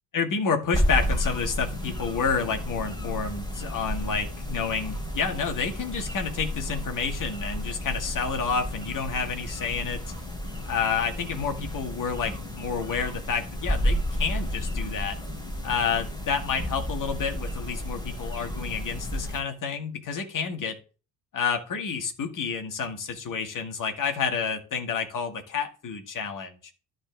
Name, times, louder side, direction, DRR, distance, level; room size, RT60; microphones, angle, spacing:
voice 1, 0.1-10.0 10.7-15.2 15.6-20.8 21.3-26.6, left 5 dB, 40° left, 5 dB, 2.1 m, -29 dB
sound 1, 0.7-19.4, equal, 10° left, 3.6 m, -32 dB
13.0 x 4.6 x 3.5 m, 0.36 s
figure-of-eight pair, 50°, 47 cm